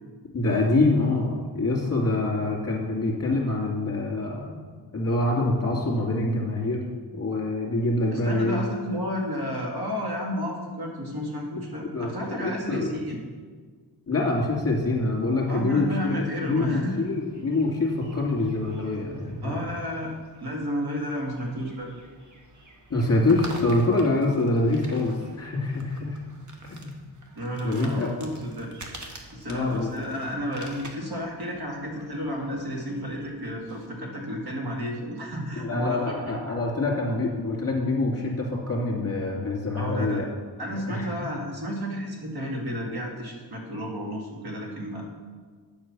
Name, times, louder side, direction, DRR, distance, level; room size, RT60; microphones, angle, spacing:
voice 1, 0.3-4.6 4.9-6.8 7.1-8.6 11.9-12.1 12.4-12.9 14.1-19.6 22.9-26.2 26.7-27.0 27.6-28.1 29.5-29.9 35.6-40.3 40.9-41.1, left 2 dB, 35° left, -1 dB, 2.4 m, -25 dB
voice 2, 8.1-13.2 15.5-17.0 19.4-20.1 20.4-21.9 27.4-28.7 29.3-36.4 39.7-40.2 40.6-45.1, equal, 60° right, -1 dB, 2.2 m, -32 dB
sound 1, 14.9-33.9, right 2 dB, 45° right, 1.4 m, -47 dB
9.5 x 7.4 x 6.1 m, 1.5 s
wide cardioid pair, 150°, 41 cm